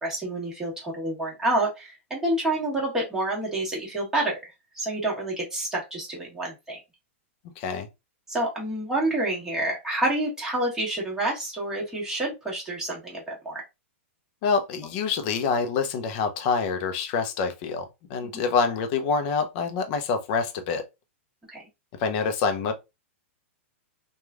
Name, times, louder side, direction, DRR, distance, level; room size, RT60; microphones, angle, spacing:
voice 1, 0.0-6.8 8.3-13.6 18.3-18.4 21.5-21.6, right 1 dB, 5° right, 1.3 m, -28 dB
voice 2, 7.6-7.9 14.4-20.9 21.9-22.7, left 5 dB, 45° left, 0.6 m, -26 dB
3.0 x 2.3 x 2.3 m
hypercardioid pair, 130°, 7 cm